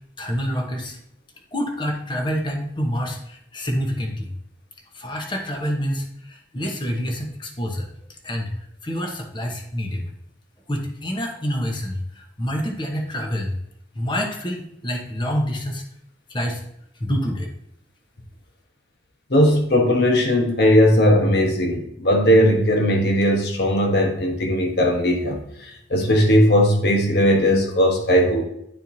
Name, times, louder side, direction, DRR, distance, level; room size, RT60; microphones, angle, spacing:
voice 1, 0.2-1.0 1.5-4.3 4.9-7.9 8.2-8.5 8.8-10.1 10.7-13.6 13.9-15.8 16.3-16.6 16.9-17.5, equal, 25° left, 2 dB, 1.1 m, -27 dB
voice 2, 19.3-28.4, equal, 60° left, 2 dB, 1.3 m, -18 dB
10.5 x 4.4 x 2.8 m, 0.76 s
head